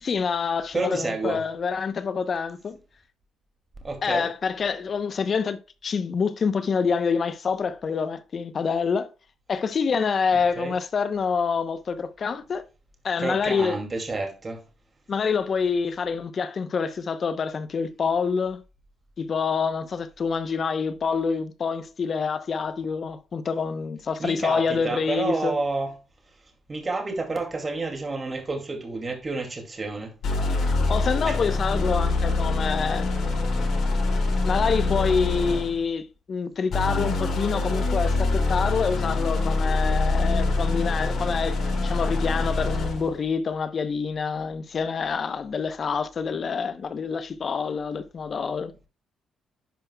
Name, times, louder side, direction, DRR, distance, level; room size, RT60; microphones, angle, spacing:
voice 1, 0.0-2.8 4.0-5.6 5.8-9.1 9.5-12.6 13.0-13.8 15.1-18.6 19.2-25.6 30.9-33.1 34.4-48.7, left 5 dB, 45° left, 0.8 m, -26 dB
voice 2, 0.7-1.4 3.8-4.3 10.3-10.7 13.2-14.6 24.2-25.9 26.7-30.2 31.2-31.4, right 3 dB, 30° right, 2.4 m, -30 dB
sound 1, 30.2-35.8 36.7-43.1, left 3 dB, 65° left, 4.5 m, -25 dB
10.5 x 5.2 x 2.3 m
cardioid pair, 90°, 0 cm